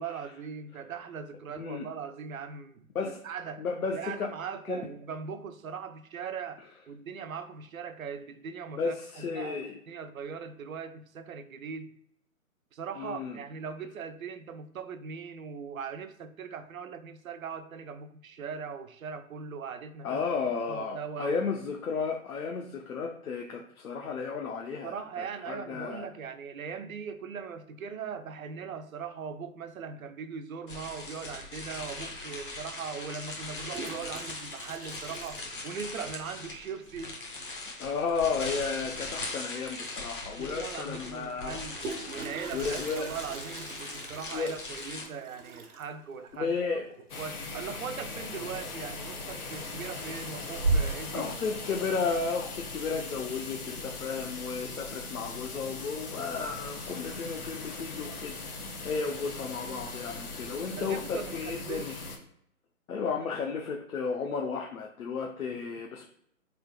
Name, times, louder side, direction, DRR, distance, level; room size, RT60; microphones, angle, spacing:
voice 1, 0.0-12.0 12.7-20.2 20.7-21.4 24.8-37.2 40.4-46.9 47.2-51.4 60.8-62.0, right 6 dB, 70° right, 0.5 m, -40 dB
voice 2, 1.6-1.9 2.9-3.2 3.6-4.3 4.7-4.8 8.8-9.7 13.0-13.4 20.0-26.1 37.8-41.6 42.5-43.1 44.3-44.6 46.3-46.9 51.1-58.4 58.8-61.9 62.9-66.1, left 5 dB, 70° left, 0.7 m, -33 dB
sound 1, 30.7-45.0, left 2 dB, 35° left, 0.7 m, -40 dB
Toilet flush, 32.1-32.2 33.4-36.2 36.5-36.6 36.9-37.0 37.2-37.6 39.3-39.4 39.8-39.9 41.4-48.1 48.4-48.9 49.3-49.8 50.2-51.2, right 3 dB, 90° right, 0.9 m, -37 dB
sound 2, 47.1-62.2, left 3 dB, 85° left, 1.1 m, -40 dB
3.9 x 3.4 x 2.2 m
hypercardioid pair, 165°, 44 cm